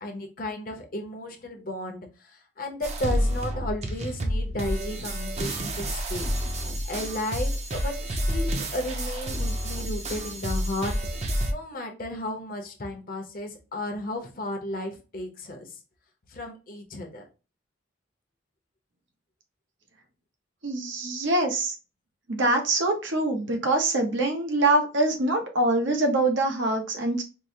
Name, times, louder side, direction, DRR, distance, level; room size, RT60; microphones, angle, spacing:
voice 1, 0.0-6.3 6.9-8.0 8.3-10.9 11.5-15.8 16.3-17.3, left 1 dB, 45° left, 4 dB, 0.7 m, -34 dB
sound 1, 2.8-11.5, equal, 35° right, 0.5 m, -29 dB
voice 2, 20.6-21.7 22.3-27.2, right 2 dB, 75° right, 4 dB, 0.8 m, -24 dB
4.6 x 2.0 x 2.6 m, 0.32 s
head